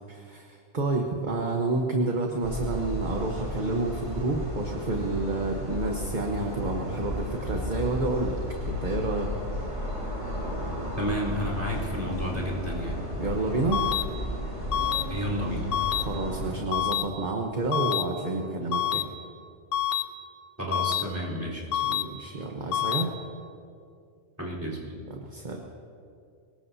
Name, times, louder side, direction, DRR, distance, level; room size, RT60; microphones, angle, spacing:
voice 1, 0.1-8.4 8.7-9.3 13.2-13.8 15.9-19.0 21.9-23.1 25.1-25.6, right 2 dB, 40° right, 1 dB, 1.2 m, -29 dB
sound 1, 2.4-16.6, equal, 85° right, 4.9 m, -33 dB
voice 2, 11.0-13.0 15.1-15.7 20.6-21.9 24.4-25.0, equal, 15° right, -3 dB, 3.9 m, -31 dB
sound 2, 13.7-14.0 14.7-15.0 15.7-16.0 16.7-17.0 17.7-18.0 18.7-19.0 19.7-20.0 20.7-21.0 21.7-22.0 22.7-23.0, left 10 dB, 85° left, 1.1 m, -26 dB
24.0 x 19.5 x 2.8 m, 2.4 s
omnidirectional pair, 1.2 m